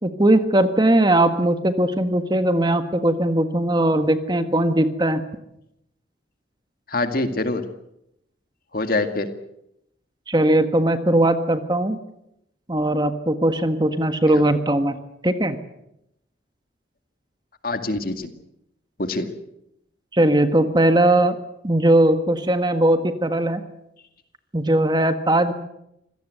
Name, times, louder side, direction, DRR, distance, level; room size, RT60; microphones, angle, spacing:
voice 1, 0.0-5.2 10.3-12.0 12.7-15.0 15.2-15.6 20.1-21.4 21.6-23.6 24.5-25.5, right 1 dB, 25° right, 9 dB, 1.5 m, -19 dB
voice 2, 6.9-7.6 8.7-9.3 14.3-14.4 17.6-18.3 19.0-19.3, left 2 dB, 50° left, 8 dB, 2.1 m, -24 dB
26.0 x 17.5 x 8.0 m, 0.81 s
head